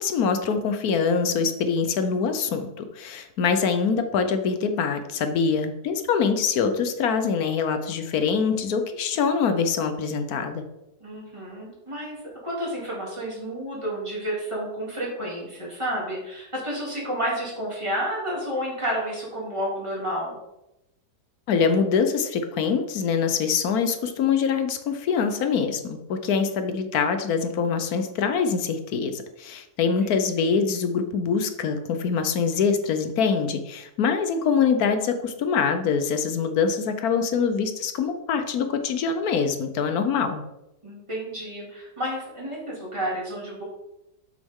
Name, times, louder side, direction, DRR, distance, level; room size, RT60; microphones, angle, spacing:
voice 1, 0.0-10.6 21.5-40.4, left 6 dB, 70° left, 8 dB, 1.2 m, -24 dB
voice 2, 11.0-20.4 40.8-43.6, equal, 15° right, -5 dB, 2.9 m, -31 dB
7.7 x 6.3 x 3.7 m, 0.89 s
omnidirectional pair, 1.7 m